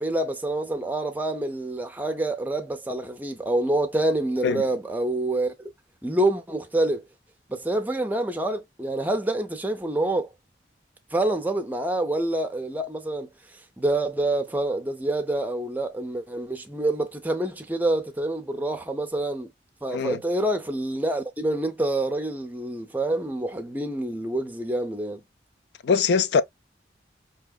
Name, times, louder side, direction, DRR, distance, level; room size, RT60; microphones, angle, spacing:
voice 1, 0.0-5.5 6.0-7.0 7.5-10.3 11.1-13.3 13.8-19.5 19.8-25.2, right 1 dB, 10° right, 0.5 m, -27 dB
voice 2, 25.8-26.4, left 5 dB, 70° left, 0.3 m, -22 dB
4.7 x 2.8 x 2.3 m
head